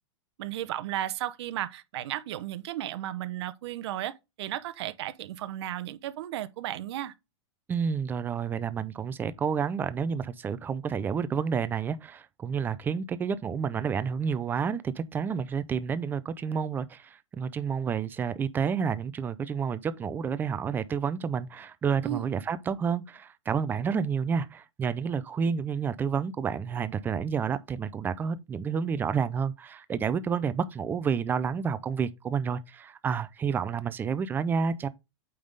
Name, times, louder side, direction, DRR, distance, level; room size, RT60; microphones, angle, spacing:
voice 1, 0.4-7.1 22.0-22.3, right 13 dB, 65° right, 0.8 m, -34 dB
voice 2, 7.7-34.9, right 6 dB, 15° right, 0.4 m, -30 dB
8.6 x 3.6 x 3.9 m
supercardioid pair, 150°, 15 cm